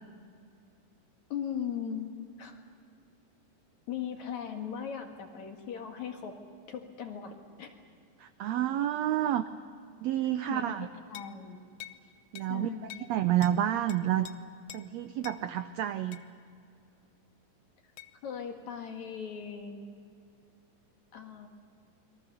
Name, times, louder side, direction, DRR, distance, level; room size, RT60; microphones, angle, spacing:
voice 1, 1.3-2.6 3.9-6.4 6.7-7.7 10.5-11.6 12.5-13.1 18.2-19.8 21.1-21.5, left 8 dB, 60° left, 4 dB, 3.1 m, -39 dB
voice 2, 8.2-9.5 10.0-10.9 12.3-14.3 14.7-16.2, right 11 dB, 85° right, 10 dB, 1.5 m, -29 dB
sound 1, 11.1-11.4 11.8-12.0 12.4-12.5 12.9-13.1 13.4-13.6 13.9-14.3 14.7-14.9 15.2-15.4 16.1-16.3 18.0-18.1, left 13 dB, 85° left, 1.4 m, -46 dB
28.5 x 22.5 x 7.0 m, 2.5 s
omnidirectional pair, 3.9 m